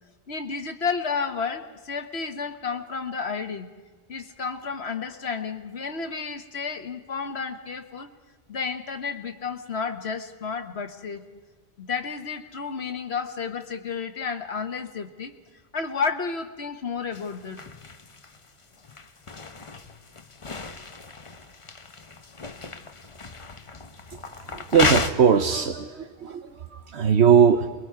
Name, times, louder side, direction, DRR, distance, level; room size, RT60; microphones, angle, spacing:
voice 1, 0.3-3.7 4.1-8.1 8.5-11.2 11.8-15.3 15.7-17.6, left 5 dB, 65° left, 6 dB, 1.6 m, -31 dB
sound 1, 17.1-25.1, left 4 dB, 30° left, 0.9 m, -33 dB
voice 2, 24.1-27.7, right 7 dB, 70° right, 8 dB, 1.2 m, -20 dB
28.0 x 22.0 x 4.7 m, 1.3 s
omnidirectional pair, 1.2 m